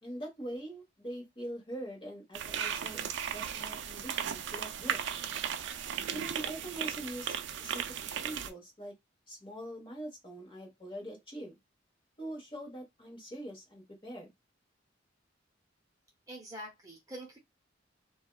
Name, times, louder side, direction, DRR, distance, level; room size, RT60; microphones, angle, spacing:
voice 1, 0.0-5.0 6.1-8.9 9.3-11.5 12.2-14.3, right 1 dB, 25° left, 1.2 m, -43 dB
sound 1, 2.3-8.5, right 8 dB, 70° right, 0.4 m, -36 dB
voice 2, 16.3-17.4, right 1 dB, 20° right, 0.7 m, -45 dB
2.6 x 2.3 x 2.2 m
head